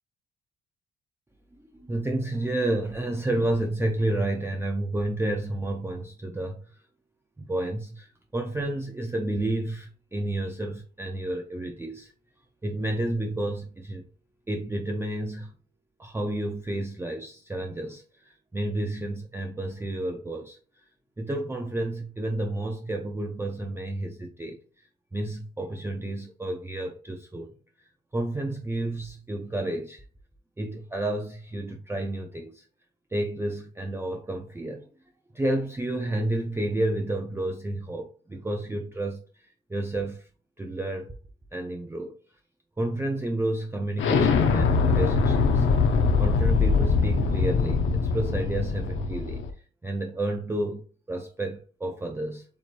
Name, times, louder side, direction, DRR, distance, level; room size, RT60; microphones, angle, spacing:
voice 1, 1.8-6.8 7.4-12.1 12.6-14.0 14.5-15.5 16.0-20.8 21.2-27.5 28.1-30.0 30.6-32.6 33.1-34.9 35.3-40.3 40.6-41.1 41.5-42.1 42.8-45.7 46.2-49.4 49.8-52.5, right 1 dB, 10° right, 0.6 m, -31 dB
Explosion, 44.0-49.5, left 4 dB, 75° left, 0.9 m, -22 dB
7.0 x 3.0 x 2.5 m
cardioid pair, 90°, 20 cm